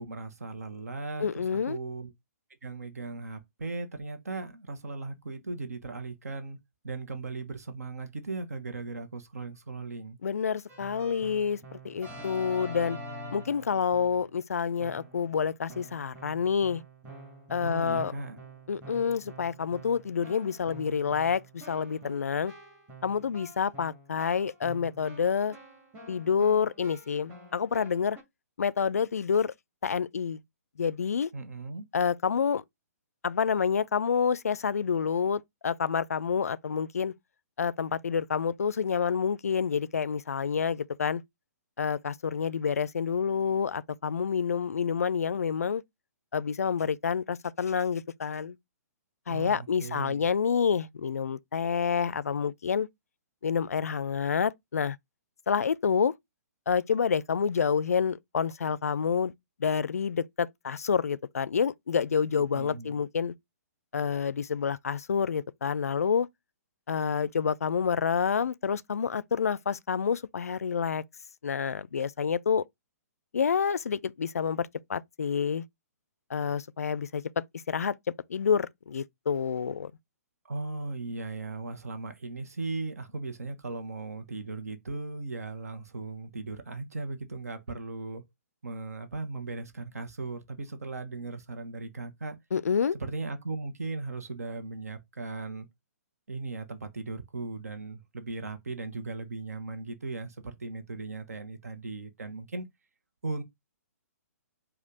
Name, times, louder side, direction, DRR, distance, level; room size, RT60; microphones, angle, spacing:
voice 1, 0.0-2.1 2.6-6.6 6.8-10.2 17.6-18.4 31.3-31.8 49.3-50.2 62.5-63.0 80.5-88.2 88.6-92.4 93.0-95.7 96.3-102.7 103.2-103.4, right 3 dB, 70° right, 0.9 m, -37 dB
voice 2, 1.2-1.8 10.2-11.6 11.8-13.0 13.3-16.8 17.5-18.1 18.7-22.5 23.0-25.6 26.1-28.2 28.6-29.5 29.8-30.4 30.8-31.3 31.9-32.6 33.2-37.1 37.6-41.2 41.8-45.8 46.3-48.6 49.3-52.9 53.4-55.0 55.5-56.1 56.7-59.3 59.6-63.3 63.9-66.3 66.9-71.0 71.4-72.6 73.3-75.6 76.3-78.0 78.3-79.9 92.5-93.0, left 6 dB, 65° left, 0.3 m, -28 dB
Keyboard (musical), 10.7-14.3 14.8-15.3 15.7-28.2, right 1 dB, 20° right, 2.1 m, -47 dB
5.1 x 2.4 x 3.7 m
figure-of-eight pair, 125°, 9 cm